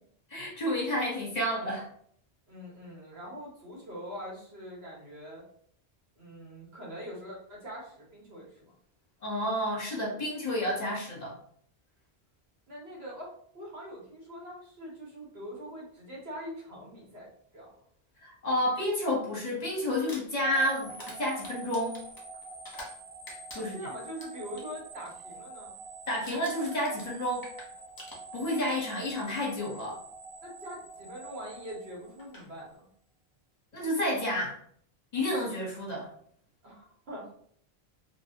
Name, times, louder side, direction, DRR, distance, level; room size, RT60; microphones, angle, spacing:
voice 1, 0.3-1.9 9.2-11.4 18.2-22.0 23.5-23.8 26.1-27.5 28.3-30.0 33.7-34.6 35.1-36.1, left 1 dB, 45° left, -4 dB, 1.0 m, -30 dB
voice 2, 2.5-5.4 6.2-8.7 12.7-17.7 23.6-25.8 30.4-32.8 36.6-37.3, equal, 70° right, -5 dB, 1.5 m, -43 dB
Crumpling crinkling, 19.9-23.0 23.3-24.7 25.0-25.4 25.6-25.9 26.3-28.6 29.6-29.7 31.7-31.8 32.2-32.5, left 1 dB, 25° left, 0.7 m, -48 dB
sound 1, 20.4-32.6, right 2 dB, 35° right, 0.9 m, -46 dB
2.8 x 2.6 x 2.7 m, 0.62 s
omnidirectional pair, 1.1 m